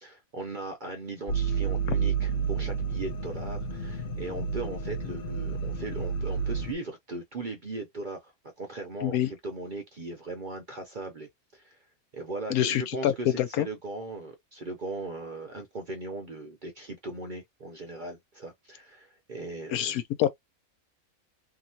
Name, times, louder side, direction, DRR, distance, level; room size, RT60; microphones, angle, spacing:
voice 1, 0.3-11.8 12.1-20.0, right 2 dB, 50° right, 0.6 m, -38 dB
sound 1, 1.3-6.7, right 5 dB, 65° left, 0.5 m, -30 dB
voice 2, 12.5-13.7 19.7-20.3, left 11 dB, 85° left, 1.0 m, -26 dB
2.9 x 2.4 x 2.7 m
omnidirectional pair, 1.5 m